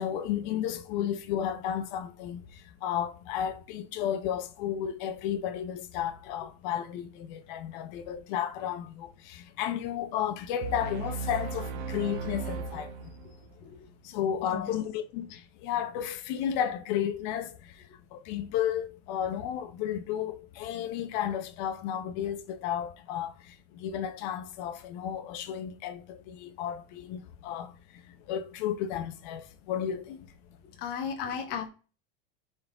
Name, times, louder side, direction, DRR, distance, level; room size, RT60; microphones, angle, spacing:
voice 1, 0.0-2.4 2.8-12.9 14.0-17.5 18.1-23.3 23.8-27.7 28.3-30.2, left 10 dB, 50° left, 0.9 m, -33 dB
sound 1, 10.6-13.6, right 4 dB, 55° right, 1.0 m, -36 dB
voice 2, 30.8-31.7, left 7 dB, 35° left, 1.2 m, -34 dB
11.0 x 4.2 x 3.5 m
supercardioid pair, 175°, 29 cm